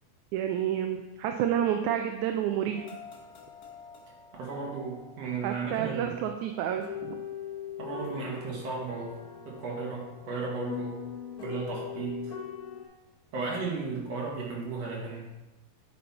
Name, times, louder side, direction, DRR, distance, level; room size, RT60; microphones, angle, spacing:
voice 1, 0.3-2.8 5.4-7.2, right 10 dB, 80° right, 5 dB, 1.9 m, -29 dB
sound 1, 2.7-12.8, left 8 dB, 80° left, 0.8 m, -42 dB
voice 2, 4.3-6.2 7.8-9.1 9.4-11.0 11.4-12.4 13.3-15.3, right 4 dB, 55° right, -3 dB, 2.8 m, -35 dB
9.4 x 5.5 x 4.4 m, 1.0 s
omnidirectional pair, 3.5 m